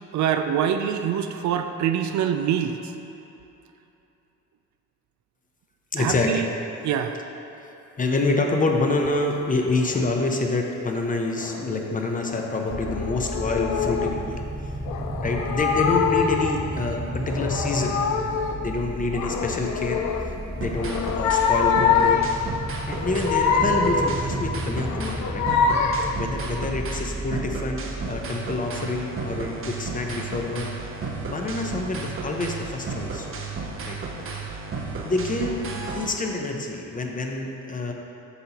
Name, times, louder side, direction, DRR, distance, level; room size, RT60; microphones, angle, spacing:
voice 1, 0.1-2.8 6.0-6.5 6.8-7.2, right 9 dB, 70° right, 7 dB, 0.5 m, -24 dB
voice 2, 5.9-6.6 8.0-14.4 15.2-18.0 18.6-22.2 22.8-25.5 26.2-30.7 31.0-33.3 33.9-34.0 35.0-35.6 35.9-37.9, left 2 dB, 25° left, 2 dB, 0.7 m, -27 dB
sound 1, 9.8-10.1 11.4-11.7 12.3-14.2 14.9-16.7 17.1-18.6 19.1-20.3 20.7-22.4 22.9-24.3 24.8-26.2, left 6 dB, 65° left, 0.5 m, -25 dB
sound 2, 12.7-28.2, right 1 dB, 10° right, 0.4 m, -33 dB
sound 3, 20.6-21.5 21.8-23.3 23.6-25.2 25.5-27.0 27.3-36.1, right 4 dB, 45° right, 0.8 m, -33 dB
8.0 x 5.3 x 3.0 m, 3.0 s
cardioid pair, 90°, 30 cm